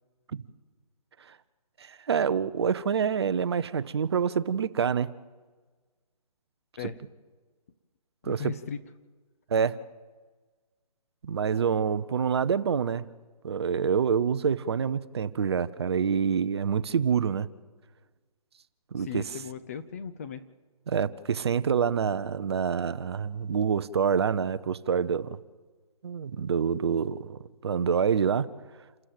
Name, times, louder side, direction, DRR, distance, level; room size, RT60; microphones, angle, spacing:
voice 1, 1.8-5.1 8.2-8.4 9.5-9.8 11.2-13.0 13.4-17.5 18.9-19.2 20.9-25.4 26.0-28.5, right 7 dB, 40° right, 15 dB, 0.8 m, -27 dB
voice 2, 8.2-8.8 19.0-20.4, left 7 dB, 25° left, 10 dB, 0.6 m, -37 dB
28.0 x 14.0 x 7.8 m, 1.4 s
hypercardioid pair, 160°, 20 cm